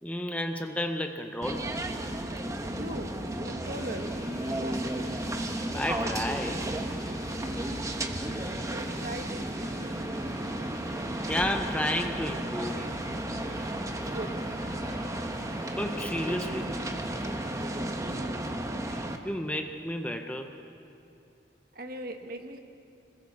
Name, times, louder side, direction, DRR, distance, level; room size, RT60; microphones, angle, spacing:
voice 1, 0.0-1.7 5.7-6.7 11.3-12.9 15.7-16.7 18.9-20.5, left 1 dB, 10° left, 5 dB, 0.8 m, -32 dB
sound 1, 1.4-19.2, right 1 dB, 15° right, 1.0 m, -33 dB
voice 2, 2.6-3.1 3.4-5.1 8.6-10.1 14.0-14.3 18.1-18.3 21.7-22.6, right 1 dB, 50° right, 5 dB, 1.4 m, -40 dB
Boiling, 3.6-17.6, left 2 dB, 40° left, 5.6 m, -50 dB
26.5 x 21.0 x 4.7 m, 2.7 s
head